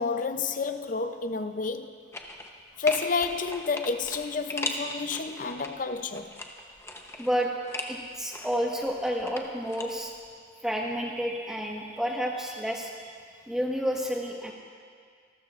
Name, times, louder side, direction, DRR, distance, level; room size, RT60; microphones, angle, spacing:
voice 1, 0.0-1.9 2.8-6.3, left 4 dB, 45° left, 0.5 m, -30 dB
sound 1, 2.1-2.6 2.9-5.7 6.1-8.0 8.3-9.9 10.1-10.2, left 2 dB, 15° left, 0.8 m, -37 dB
voice 2, 7.2-7.5 7.9-10.1 10.6-13.1 13.5-14.5, equal, 5° right, 1.4 m, -30 dB
27.0 x 13.0 x 2.5 m
head